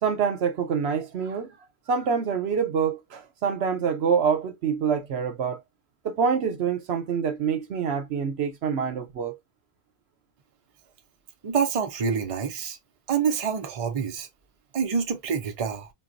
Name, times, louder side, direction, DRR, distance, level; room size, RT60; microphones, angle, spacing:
voice 1, 0.0-1.5 1.9-5.6 6.0-9.4, right 6 dB, 80° right, 1.0 m, -26 dB
voice 2, 11.4-12.8 13.1-14.3 14.7-15.9, right 6 dB, 40° right, 0.6 m, -27 dB
4.0 x 2.3 x 2.5 m
omnidirectional pair, 1.1 m